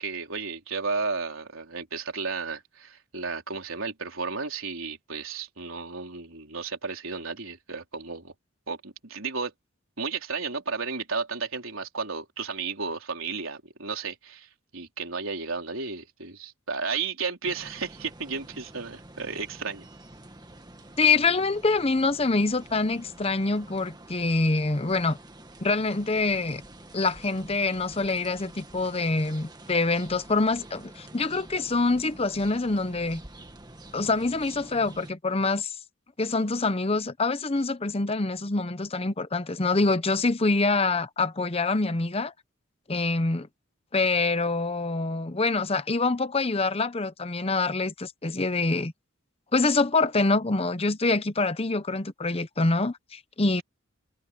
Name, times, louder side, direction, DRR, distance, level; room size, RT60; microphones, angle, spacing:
voice 1, 0.0-8.3 8.7-9.5 10.0-19.9, right 4 dB, 75° right, 3.9 m, -33 dB
sound 1, 17.4-35.1, right 1 dB, 20° right, 1.7 m, -48 dB
voice 2, 21.0-25.2 25.6-26.6 26.9-33.2 33.9-35.7 36.2-42.3 42.9-43.5 43.9-48.9 49.5-53.6, left 3 dB, 30° left, 0.8 m, -25 dB
head